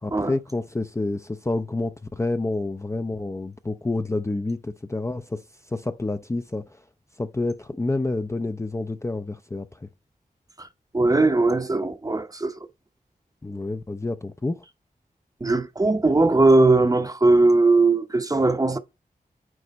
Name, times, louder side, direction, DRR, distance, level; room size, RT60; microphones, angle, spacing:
voice 1, 0.0-5.4 5.7-6.8 7.2-9.9 13.4-14.6, left 2 dB, 20° left, 0.5 m, -28 dB
voice 2, 10.9-12.6 15.4-18.8, right 2 dB, 25° right, 0.7 m, -19 dB
9.3 x 3.2 x 4.1 m
wide cardioid pair, 100°, 15 cm